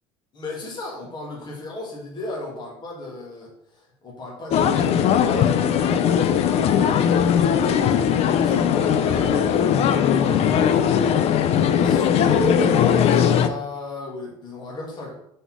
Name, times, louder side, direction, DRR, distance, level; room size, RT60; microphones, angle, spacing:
voice 1, 0.3-15.1, left 1 dB, 30° left, -3 dB, 2.2 m, -34 dB
sound 1, 4.5-13.5, left 8 dB, 50° left, 0.6 m, -19 dB
5.2 x 4.2 x 6.1 m, 0.78 s
cardioid pair, 130°, 14 cm